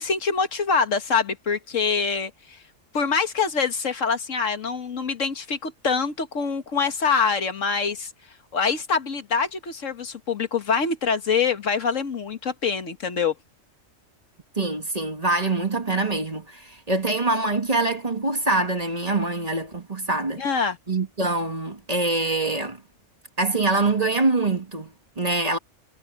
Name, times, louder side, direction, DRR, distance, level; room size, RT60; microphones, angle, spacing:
voice 1, 0.0-2.3 2.9-8.1 8.5-13.3 20.4-20.8, left 5 dB, 75° left, 1.9 m, -25 dB
voice 2, 14.6-20.4 20.9-22.8 23.4-25.6, right 2 dB, 30° right, 1.6 m, -24 dB
omnidirectional pair, 1.3 m